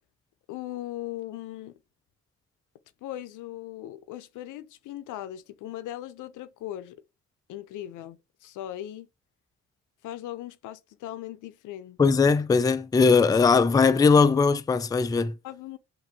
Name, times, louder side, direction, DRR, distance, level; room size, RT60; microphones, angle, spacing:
voice 1, 0.5-1.8 3.0-7.0 7.5-9.1 10.0-12.0 15.4-15.8, left 13 dB, 85° left, 0.6 m, -38 dB
voice 2, 12.0-15.3, left 4 dB, 15° left, 0.3 m, -20 dB
5.9 x 2.7 x 2.8 m
cardioid pair, 90°, 30 cm